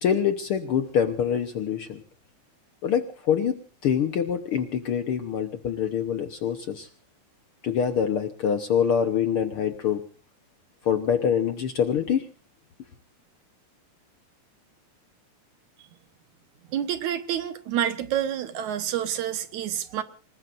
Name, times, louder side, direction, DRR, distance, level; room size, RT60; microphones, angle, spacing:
voice 1, 0.0-2.0 2.8-6.9 7.6-10.0 10.8-12.3, left 8 dB, 65° left, 1.4 m, -25 dB
voice 2, 16.7-20.0, right 10 dB, 70° right, 2.5 m, -28 dB
27.5 x 20.0 x 2.6 m
omnidirectional pair, 3.7 m